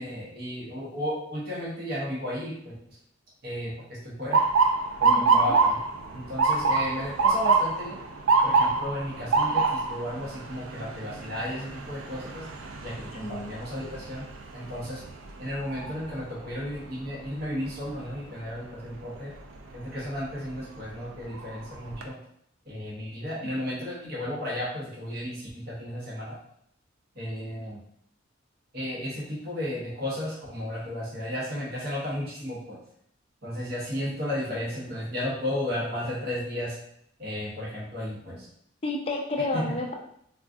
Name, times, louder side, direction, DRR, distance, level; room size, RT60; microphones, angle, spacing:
voice 1, 0.0-2.7 3.4-4.4 5.0-5.8 6.1-8.0 8.4-12.5 12.8-15.0 15.4-19.3 19.7-22.2 22.7-26.4 27.2-27.8 28.7-32.8 33.4-36.8 37.2-38.5 39.5-39.6, left 1 dB, 50° right, -6 dB, 0.9 m, -34 dB
Motor vehicle (road) / Siren, 4.3-16.2 16.7-17.1 17.9-18.2 20.1-20.3 20.8-20.9 21.3-22.0, right 4 dB, 85° right, 0.4 m, -26 dB
voice 2, 5.0-5.6 13.1-13.5 38.8-39.9, left 2 dB, 30° left, 1 dB, 0.4 m, -31 dB
3.6 x 2.3 x 2.4 m, 0.72 s
head